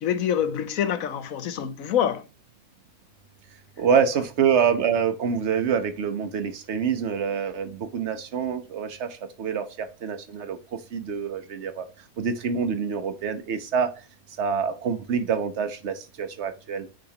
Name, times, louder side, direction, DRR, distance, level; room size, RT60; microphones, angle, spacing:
voice 1, 0.0-2.2, left 9 dB, 70° left, 1.2 m, -26 dB
voice 2, 3.8-10.6 10.9-11.9 12.2-13.9 14.4-16.9, right 7 dB, 55° right, 1.2 m, -26 dB
9.4 x 5.1 x 2.9 m
omnidirectional pair, 1.5 m